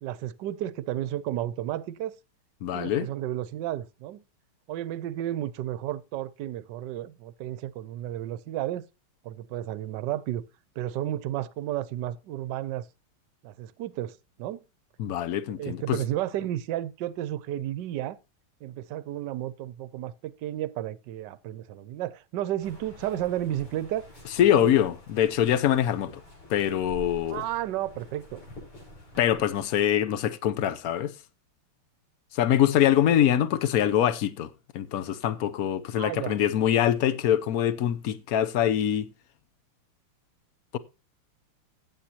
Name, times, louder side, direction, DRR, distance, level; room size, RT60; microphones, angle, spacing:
voice 1, 0.0-2.2 2.7-4.2 4.7-8.8 9.2-10.4 10.8-12.9 13.4-14.6 15.6-18.2 18.6-24.1 24.5-24.7 27.3-28.4 36.0-36.4, right 13 dB, 65° right, 1.2 m, -32 dB
voice 2, 2.6-3.1 15.0-16.0 24.4-26.2 26.5-27.4 29.2-31.1 32.3-39.1, left 10 dB, 65° left, 0.9 m, -24 dB
sound 1, 22.6-29.6, equal, 85° left, 7.0 m, -47 dB
15.0 x 8.9 x 2.8 m
omnidirectional pair, 2.3 m